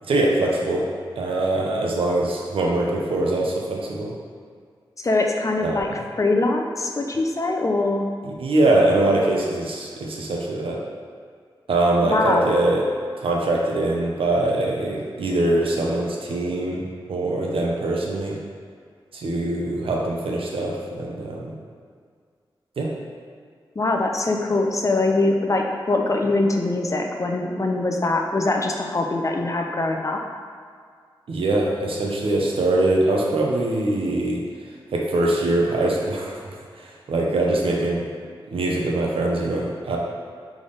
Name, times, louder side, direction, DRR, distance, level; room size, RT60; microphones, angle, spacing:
voice 1, 0.0-0.9 1.2-4.1 5.6-5.8 8.2-10.8 11.7-12.8 13.2-16.8 17.1-18.4 19.1-21.5 22.8-22.9 31.3-34.4 34.9-36.5 36.8-38.1 38.5-40.0, right 2 dB, 75° right, -2 dB, 0.7 m, -23 dB
voice 2, 5.0-5.9 6.2-8.1 12.0-12.5 23.8-30.2, left 2 dB, 35° left, 2 dB, 0.5 m, -22 dB
3.6 x 3.3 x 4.0 m, 2.1 s
cardioid pair, 60°, 9 cm